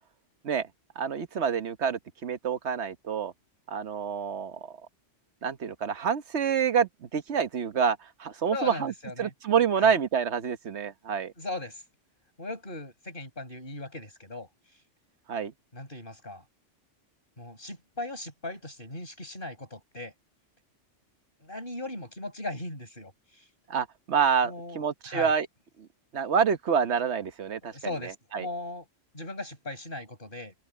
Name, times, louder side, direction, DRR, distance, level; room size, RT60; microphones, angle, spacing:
voice 1, 1.0-3.3 3.7-4.8 5.4-8.9 9.2-11.3 15.3-15.5 23.7-25.5 26.1-27.7 28.0-28.5, right 7 dB, 65° right, 1.3 m, -27 dB
voice 2, 8.5-9.3 9.8-9.9 11.4-11.8 12.4-14.5 15.7-16.4 17.4-20.1 21.4-23.1 23.4-23.5 24.4-25.3 27.6-28.9 29.1-30.5, left 2 dB, 45° left, 7.6 m, -38 dB
open air
omnidirectional pair, 1.2 m